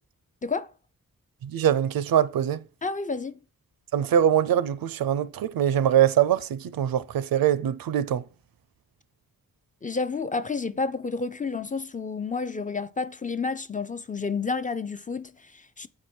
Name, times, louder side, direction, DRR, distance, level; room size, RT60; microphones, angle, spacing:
voice 1, 1.4-2.6 3.9-8.2, right 10 dB, 90° right, 0.5 m, -23 dB
voice 2, 2.8-3.4 9.8-15.9, left 4 dB, 25° left, 0.4 m, -30 dB
8.5 x 4.8 x 4.3 m
wide cardioid pair, 115°, 34 cm